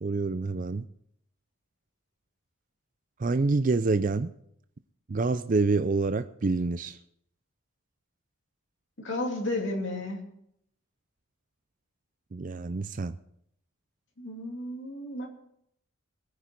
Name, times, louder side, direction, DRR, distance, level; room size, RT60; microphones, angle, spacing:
voice 1, 0.0-0.8 3.2-4.3 5.1-7.0 12.3-13.2, right 3 dB, 40° right, 11 dB, 0.4 m, -27 dB
voice 2, 9.0-10.2 14.2-15.3, left 1 dB, 55° left, 1 dB, 2.8 m, -33 dB
21.5 x 9.4 x 4.5 m, 0.72 s
head